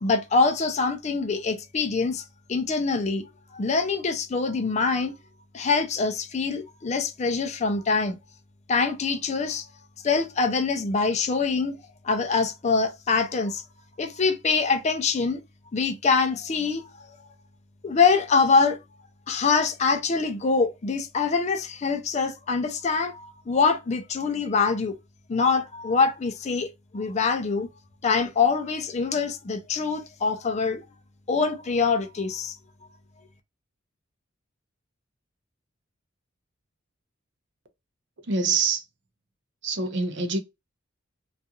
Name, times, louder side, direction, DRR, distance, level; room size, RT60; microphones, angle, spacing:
voice 1, 0.0-2.2 2.5-3.2 3.5-5.2 5.5-8.2 8.7-9.6 10.0-11.8 12.0-13.6 14.0-15.4 15.7-16.9 17.8-18.8 19.3-24.9 25.3-27.7 28.0-30.8 31.3-32.5, left 4 dB, 35° left, 0.4 m, -24 dB
voice 2, 38.3-38.8 39.6-40.4, right 4 dB, 60° right, 0.5 m, -25 dB
2.4 x 2.4 x 2.8 m
head